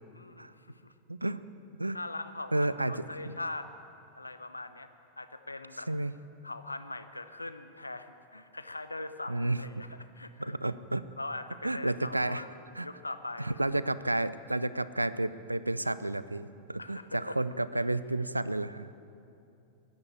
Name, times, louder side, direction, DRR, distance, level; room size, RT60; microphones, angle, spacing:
voice 1, 0.1-0.9 1.9-3.7 4.1-4.9 5.2-5.9 6.4-10.5 11.2-12.5 12.8-13.8 16.8-17.4, left 2 dB, 85° left, 9 dB, 0.8 m, -41 dB
voice 2, 1.1-1.4 1.8-2.0 2.5-2.9 3.2-3.3 5.9-6.1 9.3-9.6 10.4-11.0 11.6-12.4 12.8-12.9 13.4-18.9, right 2 dB, 85° right, 16 dB, 0.4 m, -31 dB
16.0 x 9.8 x 8.3 m, 2.7 s
figure-of-eight pair, 90°, 0 cm